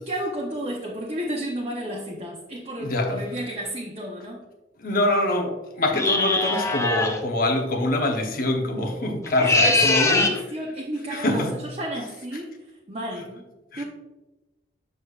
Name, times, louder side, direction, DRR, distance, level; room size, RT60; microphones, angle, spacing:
voice 1, 0.0-4.4 9.4-13.4 13.8-13.9, right 1 dB, 35° right, -4 dB, 0.8 m, -32 dB
voice 2, 2.8-3.2 4.8-10.2 11.1-11.6 13.7-13.8, left 1 dB, 55° left, 3 dB, 0.9 m, -24 dB
sound 1, 5.9-7.2 9.2-10.4, left 2 dB, 15° left, 0.5 m, -22 dB
6.5 x 6.4 x 2.4 m, 1.1 s
head